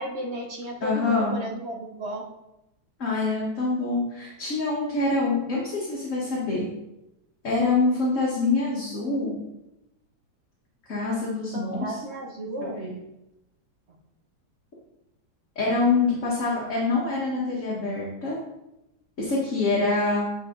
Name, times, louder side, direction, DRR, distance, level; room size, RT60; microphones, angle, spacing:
voice 1, 0.0-2.2 11.5-12.8, equal, 45° right, 1 dB, 1.2 m, -33 dB
voice 2, 0.8-1.4 3.0-6.7 7.4-9.4 10.9-12.0 12.6-12.9 15.6-18.4 19.2-20.3, left 3 dB, 45° left, -6 dB, 1.8 m, -25 dB
8.3 x 4.9 x 3.9 m, 0.90 s
omnidirectional pair, 1.9 m